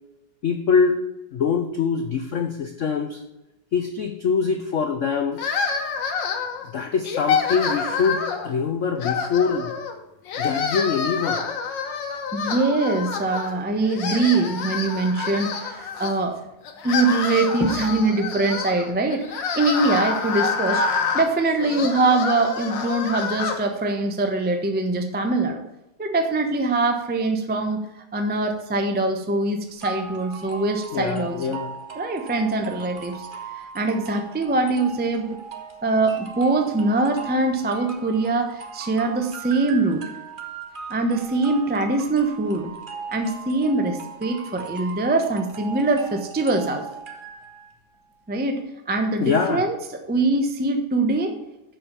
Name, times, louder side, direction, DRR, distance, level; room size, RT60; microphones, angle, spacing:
voice 1, 0.4-1.0 1.3-3.2 3.7-5.4 6.7-9.7 10.4-11.4 30.9-31.7 49.2-49.6, left 6 dB, 90° left, 6 dB, 0.6 m, -24 dB
sound 1, 5.4-6.7 7.0-8.5 9.0-9.9 10.3-13.5 13.8-16.1 16.6-23.6, left 5 dB, 65° left, 1.7 m, -27 dB
voice 2, 12.3-16.4 16.8-20.8 21.1-25.6 26.0-27.8 28.1-31.6 31.9-33.3 33.5-35.4 35.8-40.0 40.9-42.7 43.1-46.9 48.3-49.8 50.1-51.4, right 3 dB, 15° right, 5 dB, 0.4 m, -23 dB
sound 2, 29.8-47.7, right 6 dB, 30° right, 1.1 m, -39 dB
7.7 x 6.0 x 6.9 m, 0.95 s
omnidirectional pair, 2.2 m